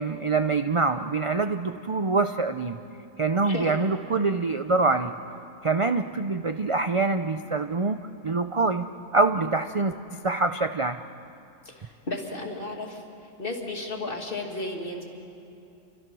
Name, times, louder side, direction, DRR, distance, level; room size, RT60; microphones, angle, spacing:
voice 1, 0.0-2.8 3.2-5.1 5.6-11.0, right 3 dB, 40° right, 8 dB, 0.5 m, -25 dB
voice 2, 3.4-3.9 11.6-13.0 13.4-15.0, left 2 dB, 40° left, 1 dB, 2.8 m, -33 dB
29.0 x 24.5 x 6.2 m, 2.6 s
omnidirectional pair, 1.4 m